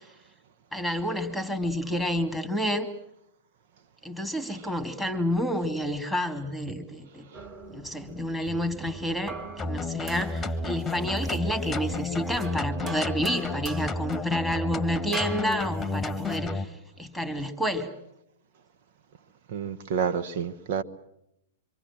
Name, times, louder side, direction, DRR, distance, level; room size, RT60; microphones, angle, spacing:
voice 1, 0.7-2.9 4.0-7.3 7.7-17.9, equal, 5° right, 2.8 m, -29 dB
sound 1, 7.3-16.5, right 3 dB, 25° right, 5.2 m, -43 dB
sound 2, 9.6-16.7, left 3 dB, 15° left, 1.5 m, -31 dB
voice 2, 19.5-20.8, right 7 dB, 60° right, 1.3 m, -29 dB
26.0 x 25.0 x 7.6 m
hypercardioid pair, 115°, 0 cm